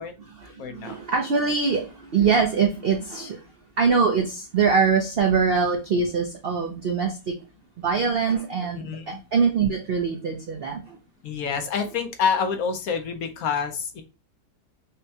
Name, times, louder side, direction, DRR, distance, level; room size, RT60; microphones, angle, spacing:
voice 1, 0.0-3.4 3.8-7.4 7.8-11.0, right 5 dB, 75° right, 3 dB, 0.5 m, -23 dB
voice 2, 0.6-0.9 8.8-9.2 11.2-14.0, left 6 dB, 65° left, 6 dB, 1.0 m, -27 dB
5.4 x 2.2 x 2.7 m, 0.31 s
omnidirectional pair, 1.8 m